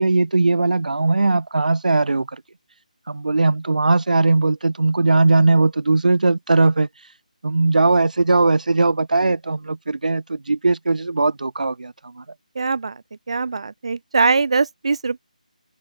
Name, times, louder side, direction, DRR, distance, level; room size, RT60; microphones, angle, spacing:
voice 1, 0.0-2.4 3.1-6.9 7.4-12.2, right 3 dB, 70° right, 3.3 m, -19 dB
voice 2, 12.5-12.9 13.3-15.2, right 4 dB, 45° right, 3.0 m, -21 dB
figure-of-eight pair, 175°, 4 cm